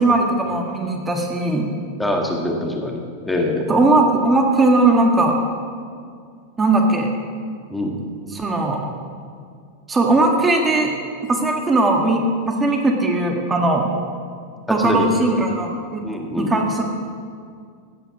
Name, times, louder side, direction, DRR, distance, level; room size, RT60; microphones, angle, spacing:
voice 1, 0.0-1.7 3.7-5.4 6.6-7.1 8.3-8.8 9.9-10.9 11.3-13.9 14.7-16.0 16.4-16.8, right 2 dB, 15° right, 1 dB, 1.7 m, -18 dB
voice 2, 2.0-3.7 7.7-8.0 14.7-15.5 16.0-16.5, left 1 dB, 5° left, 1 dB, 1.8 m, -24 dB
15.0 x 9.0 x 6.0 m, 2.1 s
figure-of-eight pair, 95°, 0 cm